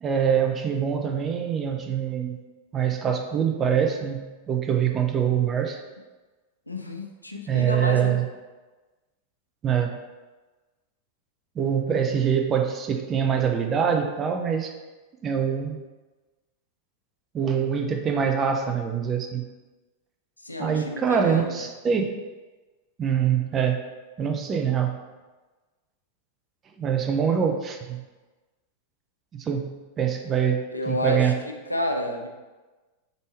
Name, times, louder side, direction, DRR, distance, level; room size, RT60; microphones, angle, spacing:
voice 1, 0.0-2.4 2.7-5.8 7.5-8.3 9.6-10.0 11.6-14.7 15.2-15.8 17.3-19.4 20.6-22.1 23.0-23.8 24.2-25.0 26.8-28.0 29.3-31.3, right 7 dB, 25° right, 4 dB, 0.5 m, -24 dB
voice 2, 6.7-8.2 20.4-21.7 30.7-31.3 31.7-32.3, left 1 dB, 85° left, 3 dB, 0.4 m, -30 dB
4.0 x 3.5 x 3.2 m, 1.2 s
figure-of-eight pair, 90°, 0 cm